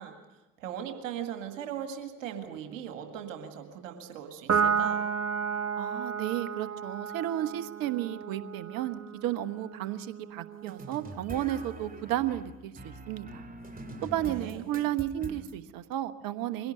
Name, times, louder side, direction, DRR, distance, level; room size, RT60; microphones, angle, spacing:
voice 1, 0.0-5.0 14.2-14.7, right 9 dB, 80° right, 6 dB, 2.0 m, -39 dB
Piano, 4.5-11.2, right 6 dB, 40° right, 1.8 m, -32 dB
voice 2, 5.8-13.5 14.0-16.7, right 13 dB, 65° right, 12 dB, 1.2 m, -33 dB
sound 1, 10.7-15.6, right 1 dB, 20° right, 2.5 m, -43 dB
22.5 x 17.0 x 9.4 m, 1.0 s
figure-of-eight pair, 50°, 38 cm